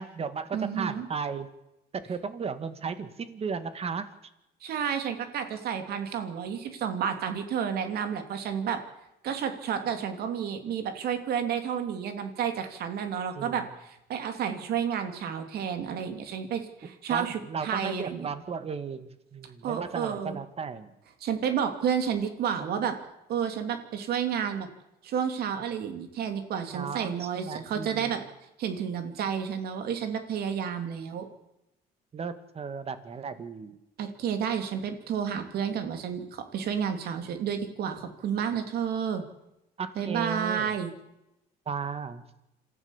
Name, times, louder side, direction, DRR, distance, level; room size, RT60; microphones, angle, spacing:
voice 1, 0.0-1.5 1.9-4.1 13.4-13.6 17.1-20.9 26.7-28.2 32.1-33.8 39.8-40.7 41.7-42.2, right 5 dB, 35° right, 11 dB, 2.1 m, -35 dB
voice 2, 0.5-1.1 4.6-8.8 9.2-18.3 19.6-20.4 21.2-22.9 23.3-24.7 25.0-28.2 28.6-31.3 34.0-39.2 40.0-40.9, right 8 dB, 70° right, 7 dB, 3.0 m, -31 dB
27.0 x 14.0 x 7.3 m, 0.89 s
cardioid pair, 110°, 17 cm